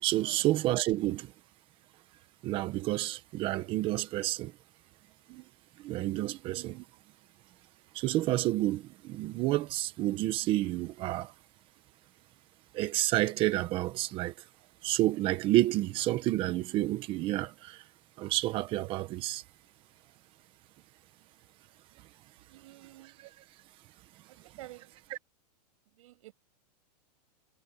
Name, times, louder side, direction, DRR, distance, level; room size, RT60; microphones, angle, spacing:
voice 1, 0.0-1.3 2.4-4.5 5.3-5.4 5.8-6.8 7.9-11.3 12.7-14.3 14.8-17.8 18.2-19.4 23.2-23.3 25.1-25.2, right 16 dB, 25° right, 1.1 m, -29 dB
voice 2, 22.5-23.3 24.3-24.9 26.0-26.3, right 17 dB, 55° right, 7.4 m, -51 dB
supercardioid pair, 170°, 21 cm